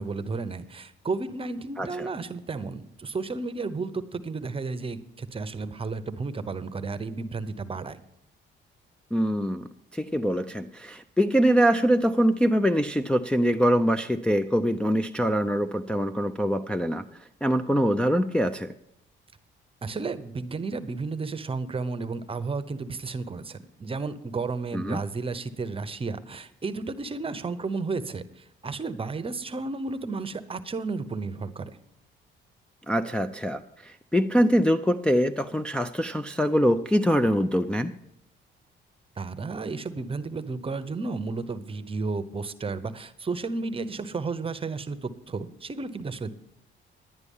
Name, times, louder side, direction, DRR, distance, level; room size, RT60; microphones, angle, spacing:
voice 1, 0.0-8.0 19.8-31.7 39.2-46.3, right 4 dB, 30° right, 12 dB, 0.9 m, -33 dB
voice 2, 1.8-2.1 9.1-17.0 17.4-18.7 24.7-25.0 32.9-37.9, equal, 5° left, 4 dB, 0.5 m, -24 dB
11.0 x 9.7 x 5.5 m, 0.74 s
cardioid pair, 90°, 20 cm